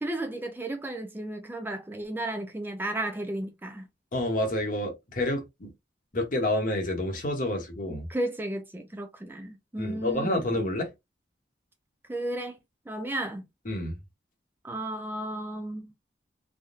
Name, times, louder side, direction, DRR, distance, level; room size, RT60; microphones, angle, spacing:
voice 1, 0.0-3.9 7.9-10.7 12.1-12.6 12.9-13.5 14.6-15.9, right 1 dB, 10° right, 0.4 m, -34 dB
voice 2, 4.1-5.7 6.1-8.1 9.8-10.9 13.7-14.0, left 1 dB, 50° left, 1.1 m, -29 dB
3.5 x 2.2 x 2.5 m
head